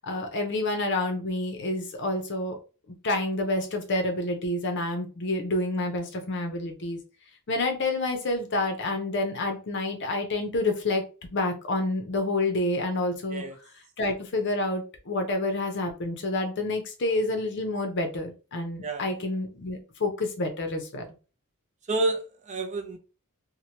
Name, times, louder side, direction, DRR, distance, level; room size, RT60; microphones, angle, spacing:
voice 1, 0.0-2.6 3.0-7.0 7.5-11.0 11.3-13.4 14.0-21.1, left 2 dB, 55° left, 0.6 m, -28 dB
voice 2, 21.9-23.0, right 2 dB, 35° right, 0.4 m, -29 dB
2.9 x 2.1 x 2.8 m
head